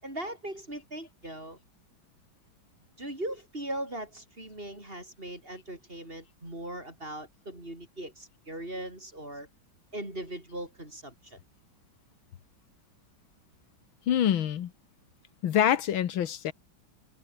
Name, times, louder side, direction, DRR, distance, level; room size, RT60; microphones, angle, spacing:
voice 1, 0.0-1.6 3.0-9.5 9.9-11.4, right 1 dB, 25° right, 7.5 m, -39 dB
voice 2, 14.1-14.7 15.4-16.5, left 10 dB, 85° left, 2.0 m, -25 dB
omnidirectional pair, 2.2 m